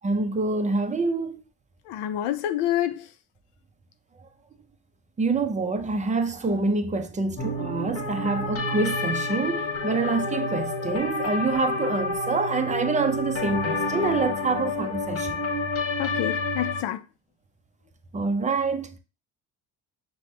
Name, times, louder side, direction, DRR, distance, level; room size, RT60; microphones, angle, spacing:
voice 1, 0.0-1.4 5.2-15.4 18.1-18.9, right 3 dB, 20° right, 0.5 m, -26 dB
voice 2, 1.9-3.0 16.0-17.0, left 12 dB, 75° left, 0.6 m, -27 dB
sound 1, 7.4-16.8, left 2 dB, 35° left, 1.3 m, -29 dB
5.9 x 2.2 x 3.2 m
cardioid pair, 95°, 42 cm